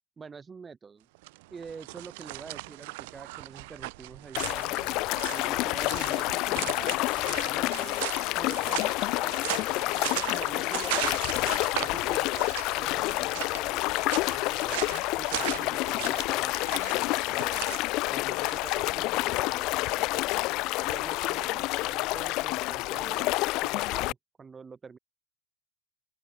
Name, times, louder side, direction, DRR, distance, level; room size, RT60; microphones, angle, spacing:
voice 1, 0.2-1.1 1.5-4.9 5.3-8.1 8.3-11.3 11.7-13.9 14.3-17.6 18.1-20.3 20.9-25.0, right 5 dB, 20° right, 4.4 m, -46 dB
sound 1, 1.1-18.8, right 24 dB, 60° right, 2.5 m, -38 dB
sound 2, 4.4-24.1, left 21 dB, 50° left, 2.0 m, -29 dB
open air
figure-of-eight pair, 80°, 0 cm